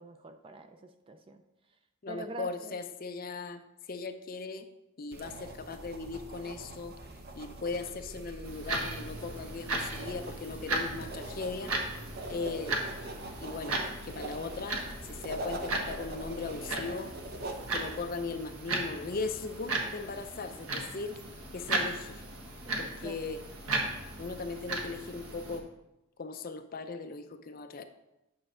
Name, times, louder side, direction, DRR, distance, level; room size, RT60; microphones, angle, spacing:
voice 1, 0.0-1.4 2.1-2.8 22.7-23.2, right 2 dB, 25° right, 8 dB, 0.4 m, -45 dB
voice 2, 2.0-3.6 3.9-4.7 5.0-6.9 7.3-11.7 12.3-12.9 13.4-17.1 17.7-21.2 21.5-22.2 22.8-23.4 24.2-25.7 26.2-27.8, left 4 dB, 40° left, 8 dB, 0.5 m, -38 dB
sound 1, 5.1-18.0, right 1 dB, 45° right, 0.7 m, -43 dB
sound 2, 8.4-25.6, right 2 dB, 75° right, 1.2 m, -37 dB
8.7 x 6.0 x 3.8 m, 0.95 s
head